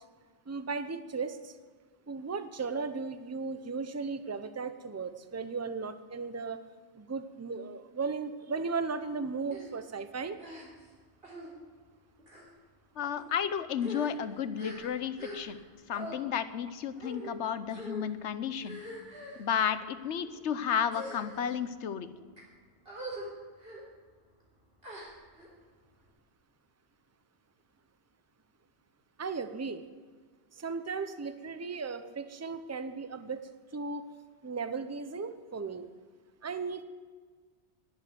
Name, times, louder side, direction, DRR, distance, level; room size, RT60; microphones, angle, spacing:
voice 1, 0.5-1.5 2.1-6.6 7.0-10.4 29.2-29.8 30.6-33.4 33.7-34.0 34.4-35.9 36.4-36.8, right 4 dB, 15° right, 11 dB, 0.6 m, -36 dB
sound 1, 9.5-9.7 10.4-10.9 11.2-11.5 12.2-12.5 13.2-13.3 13.7-15.6 15.9-16.2 17.0-17.3 17.7-18.1 18.6-19.4 20.1-20.4 20.9-21.6 22.1-22.4 22.9-23.3 23.6-23.8 24.8-25.5, equal, 55° right, 3.8 m, -43 dB
voice 2, 13.0-15.6 15.9-18.8 19.4-22.1, left 8 dB, 80° left, 12 dB, 1.1 m, -32 dB
11.5 x 11.0 x 8.0 m, 1.5 s
omnidirectional pair, 1.2 m